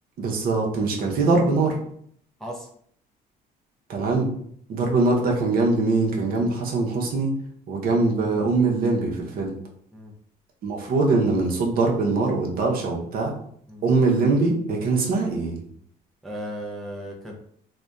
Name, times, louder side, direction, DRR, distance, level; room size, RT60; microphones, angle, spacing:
voice 1, 0.2-1.8 3.9-4.3 4.7-7.4 7.7-9.6 10.6-13.4 13.8-15.6, right 3 dB, 60° right, -1 dB, 0.7 m, -22 dB
voice 2, 16.2-17.3, equal, ahead, -3 dB, 0.4 m, -35 dB
2.6 x 2.1 x 2.3 m, 0.64 s
cardioid pair, 110°, 17 cm